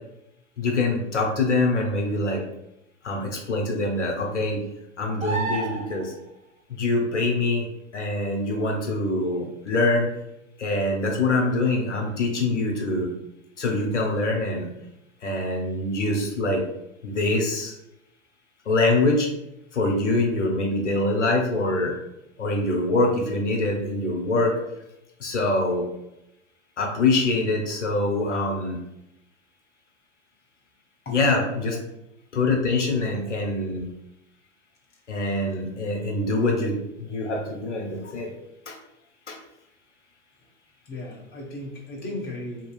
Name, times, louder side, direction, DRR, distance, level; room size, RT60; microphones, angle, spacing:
voice 1, 0.6-2.4 3.0-4.6 5.0-6.1 6.7-7.7 7.9-10.1 10.6-13.1 13.6-14.7 15.2-16.6 17.0-17.8 18.7-19.3 19.7-22.0 22.4-24.6 25.2-25.9 26.8-28.8 31.1-31.8 32.3-33.9 35.1-38.3 38.7-38.8 39.3-39.4, left 2 dB, 80° left, 1 dB, 0.8 m, -24 dB
sound 1, 5.2-6.1 9.7-9.8, right 4 dB, 20° right, 0.8 m, -29 dB
voice 2, 40.9-42.7, left 1 dB, 25° left, -2 dB, 0.9 m, -35 dB
2.7 x 2.6 x 2.3 m, 0.86 s
figure-of-eight pair, 90°, 36 cm